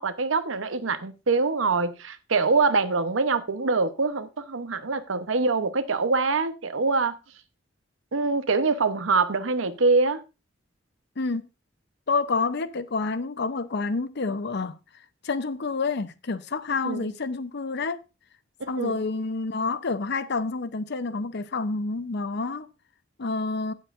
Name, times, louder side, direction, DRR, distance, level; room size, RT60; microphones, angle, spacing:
voice 1, 0.0-7.1 8.1-10.2 16.8-17.1 18.8-19.0, right 4 dB, 85° right, 0.9 m, -24 dB
voice 2, 11.2-11.5 12.1-14.8 15.2-18.0 18.7-22.7 23.2-23.7, left 4 dB, 60° left, 0.7 m, -28 dB
16.5 x 7.4 x 2.5 m
head